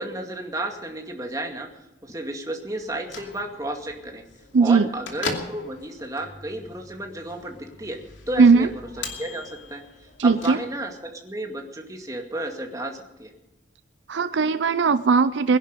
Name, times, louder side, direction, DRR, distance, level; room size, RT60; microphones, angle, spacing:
voice 1, 0.0-1.7 2.0-4.2 4.6-8.0 8.3-8.7 9.2-13.3, right 1 dB, 20° right, 3 dB, 2.2 m, -32 dB
Bell / Microwave oven, 2.8-11.1, left 4 dB, 80° left, 2.7 m, -39 dB
voice 2, 4.5-4.9 8.4-8.7 10.2-10.6 14.1-15.6, right 4 dB, 70° right, 14 dB, 0.5 m, -18 dB
21.5 x 11.0 x 5.2 m, 0.98 s
head